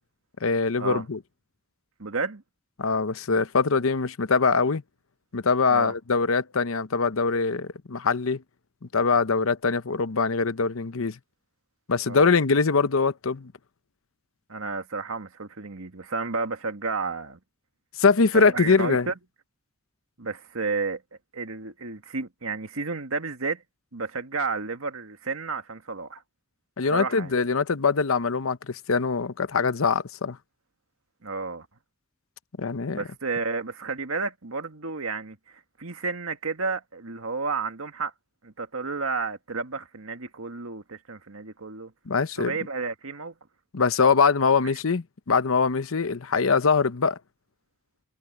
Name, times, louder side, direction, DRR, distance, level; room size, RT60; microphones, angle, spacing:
voice 1, 0.4-1.2 2.8-4.8 5.3-8.4 8.9-11.2 11.9-13.5 18.0-19.1 26.8-30.4 32.6-33.0 42.1-42.5 43.7-47.2, left 4 dB, 75° left, 0.8 m, -23 dB
voice 2, 2.0-2.4 5.7-5.9 12.1-12.3 14.5-17.4 18.3-19.1 20.2-21.0 21.3-23.6 23.9-26.2 26.9-27.3 31.2-31.7 32.9-35.4 35.8-38.1 38.4-41.9 42.4-43.3, right 4 dB, 80° right, 1.9 m, -31 dB
head